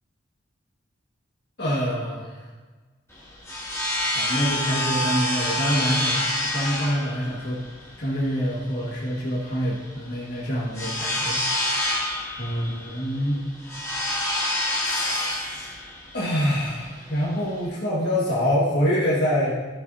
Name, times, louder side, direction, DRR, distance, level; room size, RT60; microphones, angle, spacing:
voice 1, 1.6-2.3 4.0-7.6 8.0-11.9 12.4-13.4 14.8-15.7 16.1-19.5, equal, 55° left, -7 dB, 1.7 m, -26 dB
sound 1, 3.1-17.7, left 1 dB, 15° left, 2.1 m, -28 dB
13.5 x 6.3 x 2.7 m, 1.3 s
head